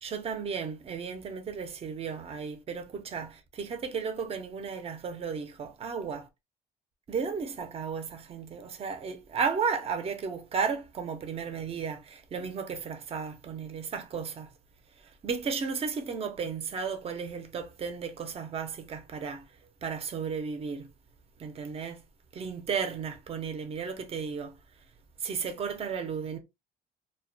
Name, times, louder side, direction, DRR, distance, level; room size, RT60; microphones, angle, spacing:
voice 1, 0.0-6.3 7.1-14.5 15.2-19.4 19.8-20.9 21.4-22.0 22.3-24.5 25.2-26.4, right 6 dB, 35° right, 0.6 m, -34 dB
2.3 x 2.1 x 2.6 m
cardioid pair, 110°, 17 cm